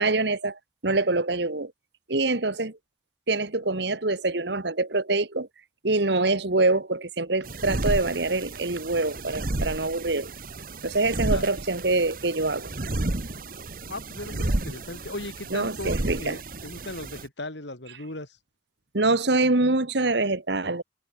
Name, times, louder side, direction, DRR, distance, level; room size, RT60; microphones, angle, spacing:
voice 1, 0.0-1.7 2.1-2.8 3.3-5.5 5.8-10.3 10.8-12.7 15.5-16.4 18.9-20.8, right 2 dB, 65° right, 1.6 m, -25 dB
sound 1, 7.4-17.3, right 2 dB, 50° right, 1.4 m, -32 dB
voice 2, 13.9-18.4, left 2 dB, 70° left, 4.1 m, -37 dB
head